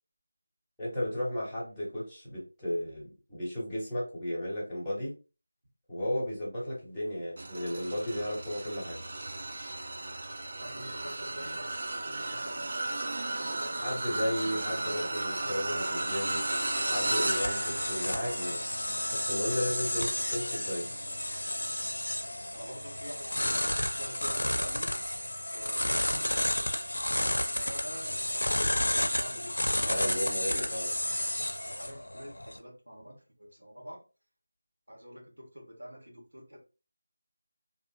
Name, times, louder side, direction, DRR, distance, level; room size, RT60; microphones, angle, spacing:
voice 1, 0.8-5.1 5.9-9.0 13.8-16.4 16.9-18.6 19.1-20.9 29.8-30.9, left 1 dB, ahead, -13 dB, 1.1 m, -34 dB
sound 1, 7.4-22.9 23.4-23.6 24.9-25.0, right 2 dB, 45° right, 0.4 m, -36 dB
voice 2, 10.5-13.7 22.5-24.9 25.5-26.8 27.3-28.7 29.1-30.1 31.6-34.0 34.9-36.6, equal, 75° right, -1 dB, 1.2 m, -46 dB
sound 2, 15.4-32.6, left 1 dB, 70° left, 0.5 m, -32 dB
2.7 x 2.5 x 2.3 m, 0.33 s
figure-of-eight pair, 165°, 0 cm